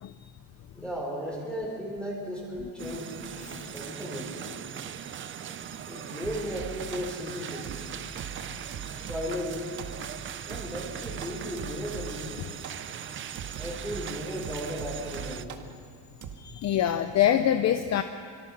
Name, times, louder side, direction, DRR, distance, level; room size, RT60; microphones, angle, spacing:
voice 1, 0.7-3.2 3.6-4.5 5.9-7.8 8.9-9.7 10.4-12.5 13.6-15.6, equal, ahead, -3 dB, 4.7 m, -35 dB
voice 2, 2.6-3.0 3.4-3.7 16.4-18.0, left 10 dB, 40° left, 8 dB, 0.8 m, -26 dB
sound 1, 2.8-15.5, right 9 dB, 30° right, 0.6 m, -40 dB
sound 2, 6.2-7.2 7.6-9.4 9.8-10.2 10.5-12.3 12.6-12.9 13.3-15.7 16.2-16.4, right 6 dB, 45° right, 1.7 m, -41 dB
25.5 x 25.0 x 6.5 m, 2.2 s
cardioid pair, 180°, 41 cm